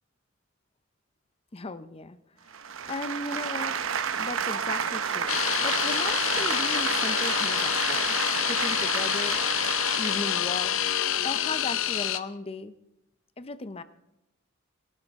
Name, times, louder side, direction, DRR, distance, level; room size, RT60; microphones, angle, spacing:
voice 1, 1.5-2.2 2.9-3.8 4.2-8.1 8.5-9.4 10.0-10.9 11.2-12.7 13.4-13.8, left 3 dB, 30° left, 13 dB, 0.6 m, -36 dB
sound 1, 2.5-10.5, right 7 dB, 90° right, 0.8 m, -31 dB
sound 2, 5.3-12.2, left 10 dB, 85° left, 0.7 m, -27 dB
22.0 x 12.0 x 3.6 m, 0.93 s
head